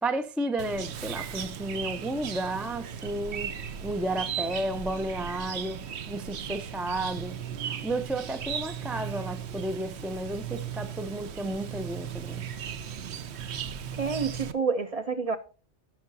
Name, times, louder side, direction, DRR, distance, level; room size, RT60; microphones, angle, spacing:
voice 1, 0.0-7.4 7.7-12.4, right 1 dB, ahead, 0.3 m, -32 dB
Chirp tweet, 0.6-14.5, right 8 dB, 70° right, 1.0 m, -37 dB
voice 2, 13.9-15.4, right 5 dB, 40° right, 0.6 m, -28 dB
16.0 x 5.7 x 2.6 m
omnidirectional pair, 1.2 m